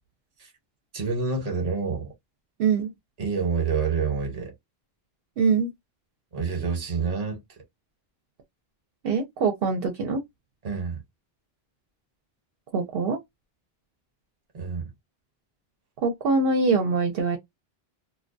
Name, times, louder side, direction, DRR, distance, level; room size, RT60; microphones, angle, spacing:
voice 1, 0.9-2.1 3.2-4.5 6.3-7.4 10.6-11.0 14.5-14.9, right 5 dB, 40° right, 0.9 m, -27 dB
voice 2, 2.6-2.9 5.4-5.7 9.0-10.2 12.7-13.2 16.0-17.4, right 4 dB, 70° right, 0.8 m, -23 dB
2.2 x 2.2 x 2.5 m
omnidirectional pair, 1.0 m